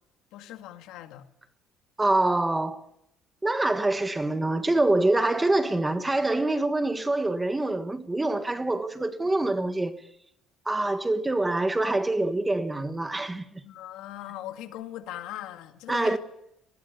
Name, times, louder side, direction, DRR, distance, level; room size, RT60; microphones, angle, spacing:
voice 1, 0.3-1.3 13.6-16.2, left 13 dB, 85° left, 2.0 m, -39 dB
voice 2, 2.0-2.8 3.4-9.9 10.6-13.6 15.9-16.2, right 2 dB, 10° right, 1.4 m, -25 dB
19.5 x 18.5 x 8.3 m
cardioid pair, 135°, 0 cm